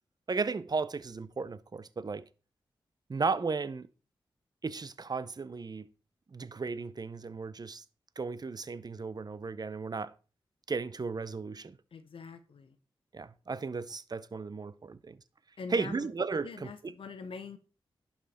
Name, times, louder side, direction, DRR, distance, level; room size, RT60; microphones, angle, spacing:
voice 1, 0.3-2.2 3.1-3.9 4.6-5.9 6.3-7.8 8.2-10.1 10.7-11.8 13.1-15.2 15.7-16.9, right 4 dB, 45° right, 0.8 m, -35 dB
voice 2, 11.9-12.8 15.6-16.1 16.4-17.6, left 5 dB, 70° left, 1.0 m, -44 dB
11.0 x 5.9 x 4.3 m
cardioid pair, 45°, 9 cm